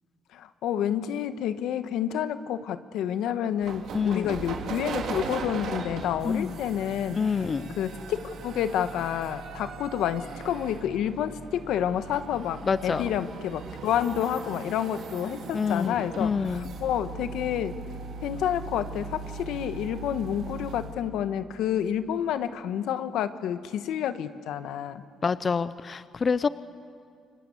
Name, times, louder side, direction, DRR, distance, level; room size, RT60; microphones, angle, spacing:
voice 1, 0.3-7.4 7.8-17.8 18.2-25.0, left 10 dB, 85° left, 10 dB, 1.2 m, -29 dB
sound 1, 3.6-21.0, right 4 dB, 75° right, 3.1 m, -39 dB
voice 2, 3.9-4.3 6.2-6.5 7.2-7.7 12.7-13.1 15.5-16.7 25.2-26.5, left 5 dB, 40° left, 15 dB, 0.6 m, -27 dB
28.5 x 24.0 x 8.5 m, 2.3 s
cardioid pair, 90°, 0 cm